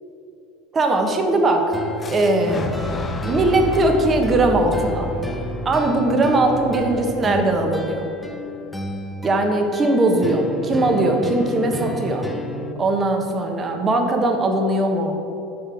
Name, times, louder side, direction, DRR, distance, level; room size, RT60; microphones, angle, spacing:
voice 1, 0.7-1.7 2.1-2.7 3.2-5.1 5.6-8.1 9.2-12.3 12.8-15.2, right 2 dB, 30° right, 3 dB, 1.2 m, -20 dB
sound 1, 1.7-12.7, equal, 5° left, 0.9 m, -32 dB
Fire / Explosion, 2.0-7.9, left 3 dB, 25° left, 0.6 m, -31 dB
6.4 x 6.1 x 5.9 m, 2.8 s
hypercardioid pair, 85°, 0 cm